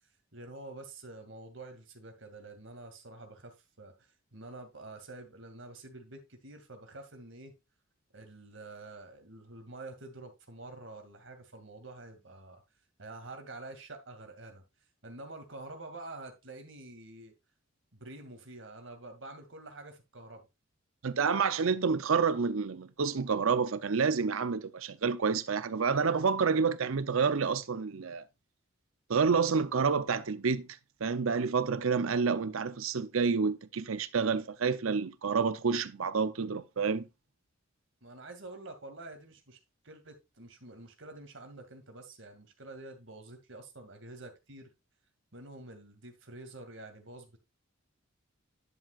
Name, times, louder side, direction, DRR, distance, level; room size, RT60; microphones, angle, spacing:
voice 1, 0.3-7.5 8.1-12.6 13.0-14.6 15.0-17.3 17.9-20.4 38.0-39.6 39.8-44.7 45.3-47.4, right 2 dB, 65° right, 2.3 m, -47 dB
voice 2, 21.0-28.2 29.1-30.7 31.0-37.1, right 5 dB, 80° right, 0.6 m, -29 dB
10.5 x 7.3 x 2.4 m
head